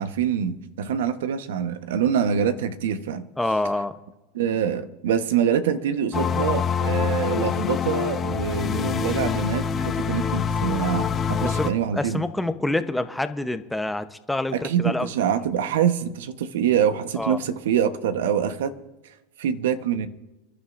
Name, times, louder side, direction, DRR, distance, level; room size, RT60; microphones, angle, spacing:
voice 1, 0.0-3.3 4.3-12.2 14.5-18.7 19.4-20.1, right 8 dB, 80° right, 10 dB, 1.1 m, -25 dB
voice 2, 3.4-3.9 11.4-15.1 17.2-17.4, left 2 dB, 5° left, 9 dB, 0.9 m, -27 dB
sound 1, 6.1-11.7, left 7 dB, 30° left, 1.1 m, -25 dB
29.0 x 11.0 x 2.6 m, 1.0 s
hypercardioid pair, 110°, 0 cm